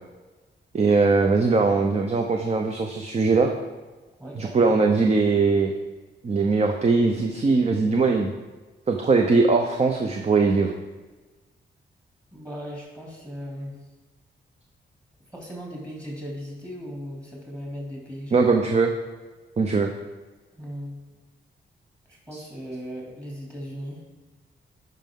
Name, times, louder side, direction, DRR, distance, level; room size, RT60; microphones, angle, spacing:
voice 1, 0.7-3.5 4.4-5.7 6.2-8.3 8.9-10.7 18.3-18.9 19.6-19.9 22.3-22.4, right 4 dB, 35° right, 3 dB, 0.7 m, -21 dB
voice 2, 4.2-4.8 12.3-13.7 15.3-18.4 20.5-21.0 22.1-24.0, equal, 15° right, -3 dB, 2.5 m, -37 dB
11.0 x 5.3 x 3.7 m, 1.2 s
cardioid pair, 90°, 19 cm